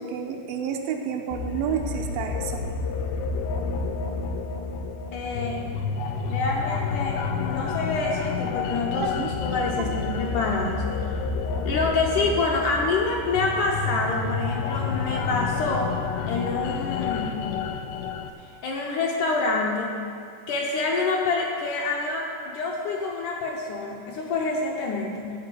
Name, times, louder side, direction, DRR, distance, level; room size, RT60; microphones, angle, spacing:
voice 1, 0.0-2.6 9.0-9.3 9.8-9.9, right 7 dB, 75° right, 3 dB, 2.4 m, -30 dB
sound 1, 1.3-18.3, left 5 dB, 85° left, 2.5 m, -29 dB
voice 2, 5.1-5.6 6.3-10.9 11.7-16.0 16.2-17.4 18.6-19.9 20.5-25.3, left 3 dB, 70° left, -1 dB, 2.0 m, -27 dB
13.5 x 4.9 x 7.6 m, 2.4 s
omnidirectional pair, 4.3 m